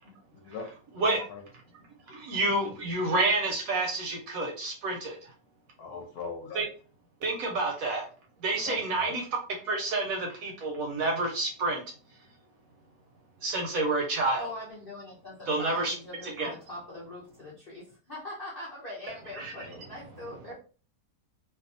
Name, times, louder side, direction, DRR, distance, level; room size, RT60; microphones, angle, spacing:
voice 1, 0.3-0.7 1.0-1.4 5.8-6.7 8.6-9.2, left 5 dB, 70° left, 3 dB, 1.0 m, -40 dB
voice 2, 2.1-5.3 6.5-6.7 7.2-8.1 8.4-9.2 9.6-11.8 13.4-14.5 15.5-15.9 16.2-16.5 19.4-19.5, right 2 dB, 70° right, 1 dB, 0.9 m, -29 dB
voice 3, 14.3-20.5, left 1 dB, 55° left, -5 dB, 0.6 m, -42 dB
2.6 x 2.3 x 2.5 m, 0.37 s
omnidirectional pair, 1.8 m